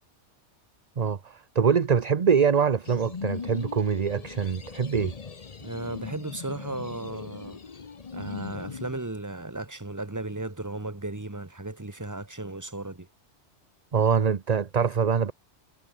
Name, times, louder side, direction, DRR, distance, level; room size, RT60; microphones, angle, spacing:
voice 1, 1.0-5.1 13.9-15.3, right 6 dB, 35° right, 0.8 m, -24 dB
sound 1, 2.8-9.0, left 5 dB, 35° left, 0.9 m, -39 dB
voice 2, 5.6-7.6 8.1-13.1, right 2 dB, 15° right, 1.6 m, -35 dB
omnidirectional pair, 1.2 m